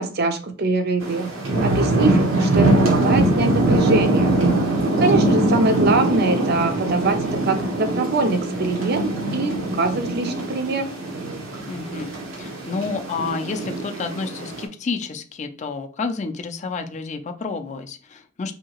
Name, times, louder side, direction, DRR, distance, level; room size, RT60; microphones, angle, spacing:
voice 1, 0.0-1.3 1.6-4.4 5.0-10.9, right 3 dB, 50° right, 0.5 m, -23 dB
sound 1, 1.0-14.7, right 2 dB, 80° right, 0.8 m, -22 dB
voice 2, 4.7-5.3 11.7-18.5, left 4 dB, 35° left, 0.4 m, -30 dB
2.8 x 2.7 x 2.9 m
head